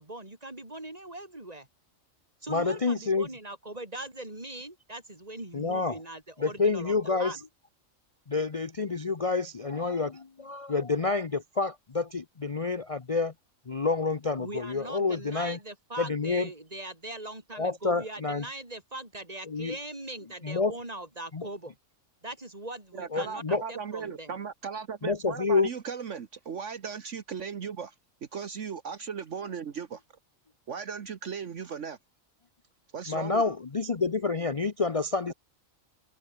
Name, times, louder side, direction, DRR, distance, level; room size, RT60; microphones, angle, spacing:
voice 1, 0.0-1.7 2.4-7.4 14.4-21.7 22.2-24.4, right 1 dB, 30° right, 3.8 m, -41 dB
voice 2, 2.5-3.3 5.5-6.0 6.4-7.4 8.3-13.3 13.7-15.6 16.0-16.5 17.6-18.4 19.5-19.8 20.4-20.7 21.3-21.5 23.1-23.6 25.0-25.7 33.1-35.3, left 4 dB, 30° left, 0.8 m, -28 dB
voice 3, 22.9-27.9 28.3-30.0 30.7-32.0 32.9-33.4, right 6 dB, 65° right, 1.5 m, -37 dB
omnidirectional pair, 1.4 m